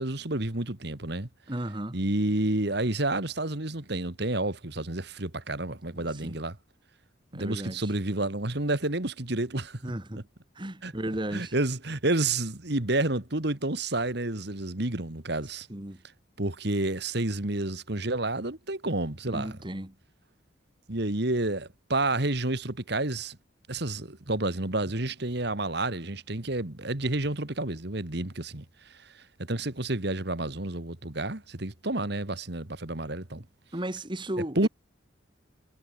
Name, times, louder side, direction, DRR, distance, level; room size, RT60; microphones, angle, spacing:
voice 1, 0.0-1.3 1.9-6.6 7.3-9.8 10.2-10.3 10.8-10.9 11.3-15.7 16.4-19.6 20.9-23.4 23.7-33.4 34.6-34.7, right 2 dB, 55° right, 2.0 m, -30 dB
voice 2, 1.5-2.0 6.0-6.4 7.3-7.9 9.8-10.2 10.5-11.5 15.7-16.0 19.3-19.9 33.7-34.7, right 1 dB, 25° right, 1.7 m, -35 dB
head